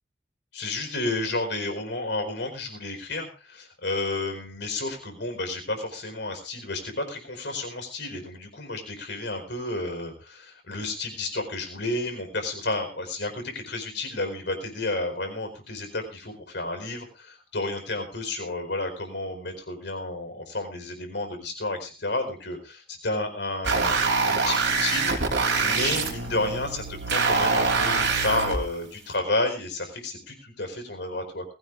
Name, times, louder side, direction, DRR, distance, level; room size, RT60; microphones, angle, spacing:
voice 1, 0.5-25.1 25.6-31.4, left 2 dB, 70° left, 6 dB, 4.5 m, -31 dB
sound 1, 23.6-28.6, right 4 dB, 75° right, 3.3 m, -24 dB
20.5 x 16.0 x 2.6 m, 0.35 s
head